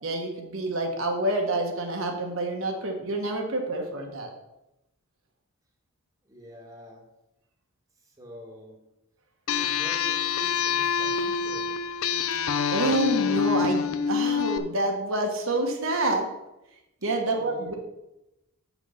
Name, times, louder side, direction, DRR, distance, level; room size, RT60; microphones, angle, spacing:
voice 1, 0.0-4.3 12.4-16.3 17.0-17.7, right 2 dB, 60° right, 2 dB, 1.3 m, -28 dB
voice 2, 6.2-7.0 8.0-8.8 9.6-11.7 17.4-17.7, equal, 15° right, 0 dB, 1.5 m, -46 dB
sound 1, 9.5-14.6, left 7 dB, 70° left, 0.6 m, -26 dB
7.4 x 6.1 x 5.6 m, 0.92 s
head